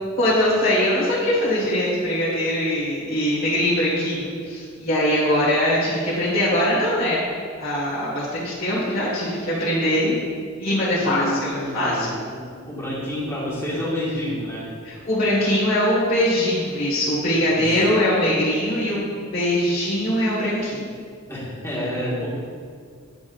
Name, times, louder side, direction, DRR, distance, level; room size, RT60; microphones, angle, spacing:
voice 1, 0.2-7.3 7.6-10.1 10.6-12.1 14.8-21.0, left 1 dB, 50° left, -10 dB, 1.9 m, -22 dB
voice 2, 10.9-14.7 17.5-17.7 21.3-22.3, left 1 dB, 15° left, -8 dB, 1.9 m, -29 dB
9.8 x 5.9 x 2.6 m, 2.1 s
head